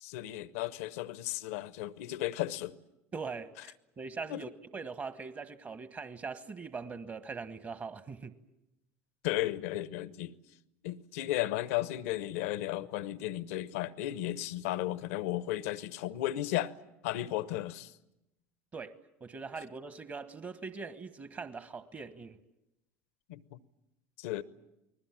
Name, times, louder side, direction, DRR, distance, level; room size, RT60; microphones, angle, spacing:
voice 1, 0.0-2.7 4.3-4.4 9.2-10.3 10.8-16.7 17.0-17.9 23.3-23.6 24.2-24.4, left 14 dB, 75° left, 0.9 m, -34 dB
voice 2, 3.1-8.3 18.7-22.4, right 4 dB, 35° right, 1.4 m, -42 dB
29.0 x 20.5 x 7.5 m
hypercardioid pair, 70°, 8 cm